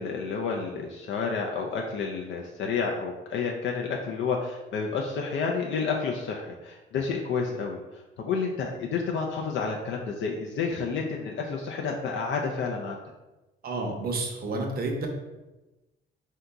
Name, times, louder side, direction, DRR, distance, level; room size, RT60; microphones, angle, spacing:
voice 1, 0.0-13.0, left 5 dB, 70° left, 0 dB, 0.5 m, -30 dB
voice 2, 13.6-15.1, right 2 dB, 50° right, 2 dB, 0.8 m, -30 dB
3.8 x 2.8 x 3.4 m, 1.1 s
cardioid pair, 90°, 20 cm